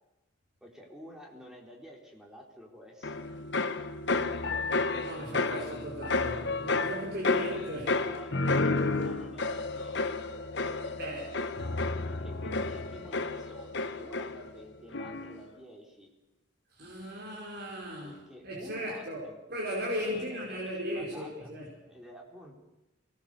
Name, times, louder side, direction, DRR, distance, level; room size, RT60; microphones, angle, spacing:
voice 1, 0.6-3.2 8.0-11.0 12.2-16.1 18.0-19.4 20.0-21.5 21.9-22.5, equal, 5° right, -1 dB, 3.9 m, -50 dB
sound 1, 3.0-14.6 14.9-15.4, left 3 dB, 60° left, 1.1 m, -31 dB
voice 2, 5.0-8.0 11.0-11.3 16.7-18.1 18.4-19.2 19.5-21.7, equal, 50° right, -4 dB, 5.4 m, -36 dB
24.0 x 20.0 x 6.9 m, 0.98 s
head